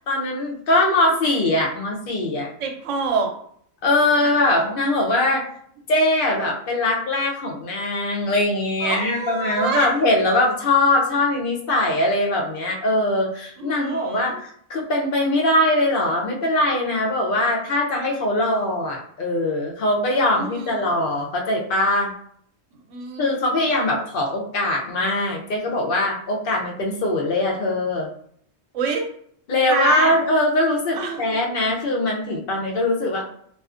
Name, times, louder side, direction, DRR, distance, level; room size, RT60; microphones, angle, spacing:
voice 1, 0.1-2.5 3.8-5.4 5.9-22.1 23.2-28.1 29.5-33.2, left 1 dB, 55° left, -1 dB, 0.6 m, -21 dB
voice 2, 2.6-3.3 4.6-4.7 8.8-9.9 13.6-14.4 20.4-20.9 22.9-23.3 28.7-29.1 29.7-30.1 30.9-31.3, right 5 dB, 80° right, 3 dB, 0.9 m, -26 dB
2.4 x 2.4 x 2.4 m, 0.63 s
omnidirectional pair, 1.3 m